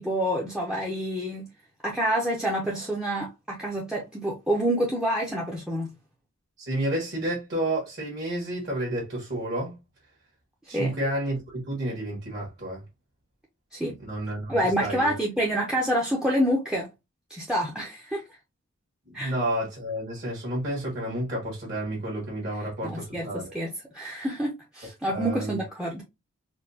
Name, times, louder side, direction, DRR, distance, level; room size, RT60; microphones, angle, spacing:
voice 1, 0.0-1.5 1.8-5.9 10.7-10.9 13.7-13.9 14.5-16.9 17.3-18.2 19.1-19.3 22.8-26.0, equal, 5° right, 0.6 m, -27 dB
voice 2, 6.6-9.8 10.7-12.8 14.0-15.1 19.1-23.5 25.1-25.6, right 1 dB, 50° right, 1.5 m, -30 dB
4.3 x 2.3 x 2.7 m
head